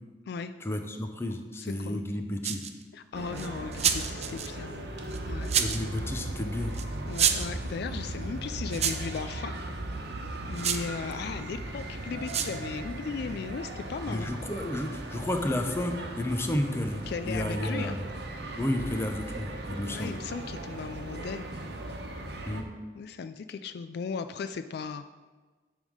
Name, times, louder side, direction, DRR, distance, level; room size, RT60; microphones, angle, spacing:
voice 1, 0.6-2.6 5.6-6.8 14.1-18.0 18.6-20.1 22.4-22.7, left 1 dB, 15° left, 5 dB, 0.7 m, -31 dB
voice 2, 1.6-2.0 2.9-4.9 5.2-5.5 7.1-9.5 10.5-14.3 17.1-18.0 19.9-21.5 23.0-25.1, left 5 dB, 60° left, 11 dB, 0.3 m, -37 dB
sound 1, 2.4-2.8 3.4-4.5 5.1-5.9 6.7-6.8 7.1-7.5 8.7-9.2 10.5-10.9 12.3-12.6, right 8 dB, 35° right, 0.5 m, -28 dB
sound 2, 3.1-22.6, right 1 dB, 65° right, 1.1 m, -38 dB
11.0 x 3.6 x 6.4 m, 1.3 s
head